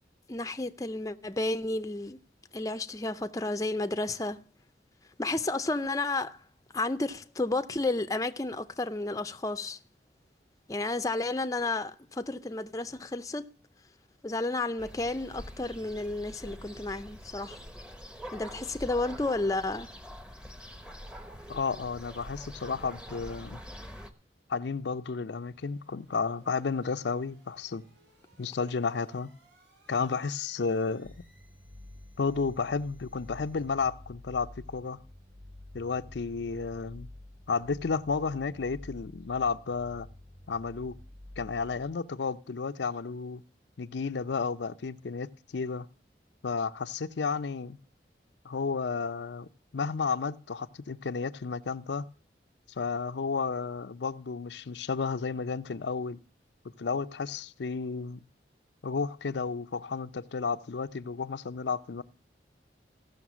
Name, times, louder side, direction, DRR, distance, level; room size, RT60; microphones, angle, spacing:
voice 1, 0.3-2.2 2.5-4.4 5.2-6.4 6.7-9.8 10.7-13.5 14.2-17.6 18.3-19.9, left 2 dB, 20° left, 0.6 m, -32 dB
sound 1, 14.8-24.1, equal, 5° right, 0.9 m, -45 dB
voice 2, 21.5-23.6 24.5-27.8 28.4-29.3 29.9-31.1 32.2-35.0 35.7-37.1 37.5-40.1 40.5-41.0 41.4-43.4 43.8-45.9 46.4-47.8 48.4-49.5 49.7-52.1 52.8-56.2 56.8-58.2 58.8-62.0, left 5 dB, 80° left, 0.5 m, -32 dB
sound 2, 25.4-33.7, right 1 dB, 80° right, 6.9 m, -65 dB
sound 3, 31.0-41.9, left 1 dB, 40° right, 1.5 m, -49 dB
16.0 x 6.5 x 6.1 m
head